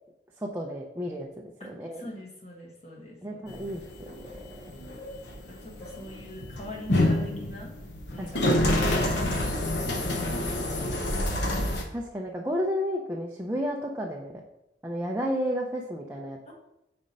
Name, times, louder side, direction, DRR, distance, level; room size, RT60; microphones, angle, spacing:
voice 1, 0.4-1.3 1.6-2.0 3.2-4.2 8.2-8.6 11.9-14.4 14.8-16.5, equal, 15° right, -1 dB, 0.5 m, -32 dB
voice 2, 2.0-3.6 5.2-7.7 8.1-11.3 16.5-16.6, left 1 dB, 40° left, -2 dB, 1.5 m, -44 dB
sound 1, 3.5-11.8, left 1 dB, 75° left, 0.9 m, -28 dB
5.1 x 4.3 x 5.3 m, 0.88 s
head